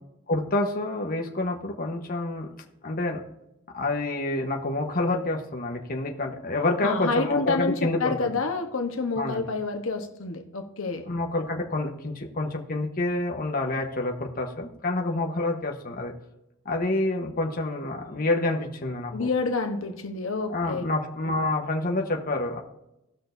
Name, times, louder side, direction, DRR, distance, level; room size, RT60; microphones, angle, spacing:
voice 1, 0.3-2.5 2.8-3.2 3.7-8.3 9.2-9.4 11.1-16.1 16.6-19.3 20.5-22.6, left 2 dB, 45° left, 2 dB, 1.1 m, -28 dB
voice 2, 6.8-11.0 19.1-20.9, left 3 dB, 70° left, 5 dB, 1.1 m, -28 dB
18.0 x 6.2 x 2.7 m, 0.89 s
head